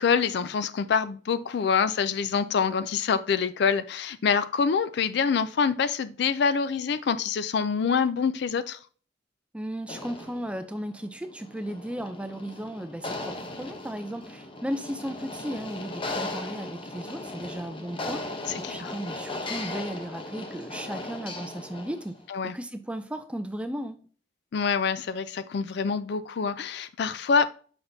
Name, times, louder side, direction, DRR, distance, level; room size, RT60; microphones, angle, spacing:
voice 1, 0.0-8.8 18.6-18.9 22.3-22.5 24.5-27.5, left 6 dB, 60° left, 0.4 m, -26 dB
voice 2, 9.5-18.2 18.6-22.2 22.5-24.0, equal, 5° right, 0.4 m, -35 dB
sound 1, 9.8-22.2, left 2 dB, 25° left, 0.8 m, -37 dB
6.9 x 5.7 x 2.7 m
head